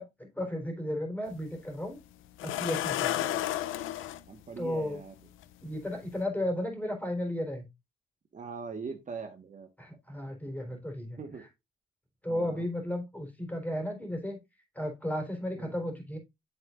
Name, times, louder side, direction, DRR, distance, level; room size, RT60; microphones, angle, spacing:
voice 1, 0.0-2.0 2.4-3.2 4.6-5.0 5.6-7.7 9.8-11.2 12.2-14.4 14.7-16.2, left 1 dB, 10° left, 3 dB, 3.9 m, -34 dB
sound 1, 1.3-1.4 2.4-4.2 5.4-5.5 6.0-6.2, left 13 dB, 90° left, 0.6 m, -31 dB
voice 2, 3.2-3.6 4.3-5.2 8.3-9.7 11.2-11.5 12.3-12.6 15.6-15.8, right 5 dB, 40° right, 5 dB, 1.4 m, -42 dB
8.8 x 7.7 x 2.5 m, 0.22 s
cardioid pair, 90°, 20 cm